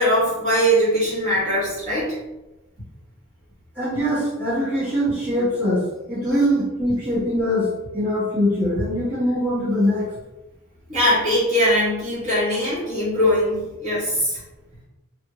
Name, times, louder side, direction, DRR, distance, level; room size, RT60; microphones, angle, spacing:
voice 1, 0.0-2.2 10.9-14.4, equal, 35° right, -9 dB, 1.2 m, -21 dB
voice 2, 3.8-5.8 6.1-7.6 7.9-10.1, equal, 10° right, -11 dB, 1.2 m, -22 dB
3.3 x 2.2 x 3.0 m, 1.0 s
head